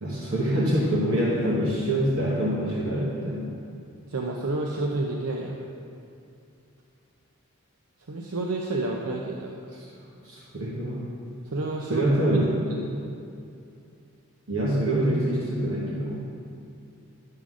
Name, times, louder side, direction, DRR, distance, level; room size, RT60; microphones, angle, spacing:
voice 1, 0.0-3.4 10.2-11.0 11.9-12.5 14.5-16.2, right 1 dB, 65° right, -5 dB, 1.2 m, -25 dB
voice 2, 4.1-5.6 8.1-9.5 11.5-12.1 12.7-13.0, right 2 dB, 80° right, -1 dB, 0.6 m, -29 dB
11.0 x 3.9 x 6.1 m, 2.6 s
head